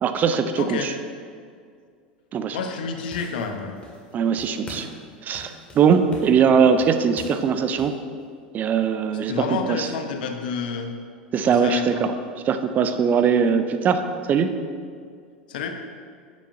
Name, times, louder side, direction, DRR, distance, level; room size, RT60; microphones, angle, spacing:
voice 1, 0.0-0.9 2.3-2.6 4.1-4.9 5.2-7.9 8.5-9.3 9.7-9.9 11.3-12.1 12.5-14.0 14.3-14.5, right 6 dB, 35° right, 9 dB, 0.6 m, -20 dB
voice 2, 0.6-0.9 2.5-3.8 9.3-10.9 11.4-12.0 15.5-15.8, left 5 dB, 65° left, 6 dB, 0.9 m, -29 dB
sound 1, 2.8-4.1 4.4-5.0 5.3-8.0, left 2 dB, 20° left, 2.1 m, -43 dB
9.8 x 8.5 x 2.7 m, 2.2 s
figure-of-eight pair, 85°, 5 cm